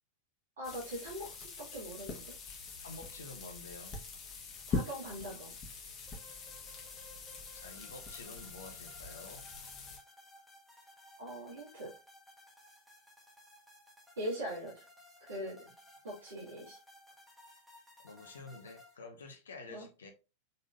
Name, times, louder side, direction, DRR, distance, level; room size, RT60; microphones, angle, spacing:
sound 1, 0.6-10.0, left 3 dB, 30° left, 1.5 m, -43 dB
voice 1, 0.6-2.3 4.7-5.5 11.2-11.9 14.2-14.8 15.2-15.6 16.0-16.8 19.7-19.9, equal, 65° right, 2.3 m, -41 dB
voice 2, 2.8-4.0 7.5-9.5 18.0-20.1, left 3 dB, 70° left, 1.1 m, -49 dB
sound 2, 6.1-19.0, left 1 dB, 5° right, 1.7 m, -58 dB
5.4 x 3.7 x 2.6 m
figure-of-eight pair, 90°, 0 cm